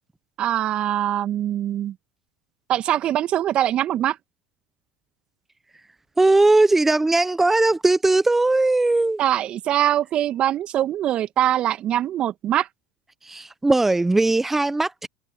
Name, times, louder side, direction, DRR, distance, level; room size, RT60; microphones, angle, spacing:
voice 1, 0.4-2.0 2.7-4.2 9.2-12.7, right 12 dB, 45° right, 1.8 m, -23 dB
voice 2, 6.2-9.2 13.3-15.1, right 2 dB, 10° right, 1.2 m, -19 dB
open air
hypercardioid pair, 75°, 2 cm